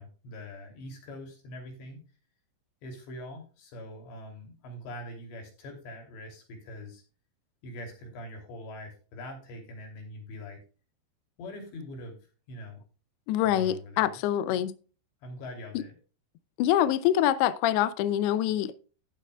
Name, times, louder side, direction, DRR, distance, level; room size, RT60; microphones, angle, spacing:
voice 1, 0.0-2.0 2.8-7.0 7.6-10.6 11.4-12.2 12.5-12.8 13.4-14.2 14.5-14.6 15.2-15.9, left 1 dB, 70° left, 5.2 m, -43 dB
voice 2, 13.3-14.7 15.7-15.8 16.6-18.8, left 12 dB, 85° left, 2.3 m, -25 dB
17.5 x 6.6 x 2.3 m
omnidirectional pair, 5.3 m